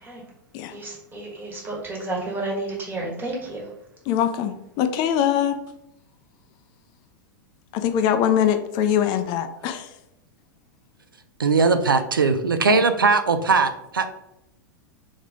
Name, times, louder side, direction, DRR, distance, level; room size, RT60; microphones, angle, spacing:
voice 1, 0.7-3.6, right 2 dB, 20° right, -3 dB, 1.5 m, -31 dB
voice 2, 4.1-5.6 7.7-9.9 12.7-12.8, left 9 dB, 40° left, 8 dB, 0.4 m, -22 dB
voice 3, 11.4-14.1, right 4 dB, 90° right, 9 dB, 0.4 m, -20 dB
3.6 x 3.2 x 3.6 m, 0.85 s
figure-of-eight pair, 100°, 11 cm